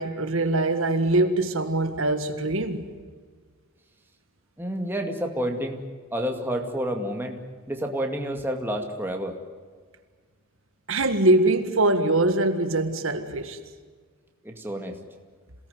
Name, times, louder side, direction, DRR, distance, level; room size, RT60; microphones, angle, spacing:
voice 1, 0.0-2.8 10.9-13.6, right 2 dB, 65° right, 1.8 m, -23 dB
voice 2, 4.6-5.8 6.1-7.4 7.7-9.4 14.4-15.0, equal, 10° right, 2.2 m, -29 dB
27.5 x 18.5 x 9.5 m
head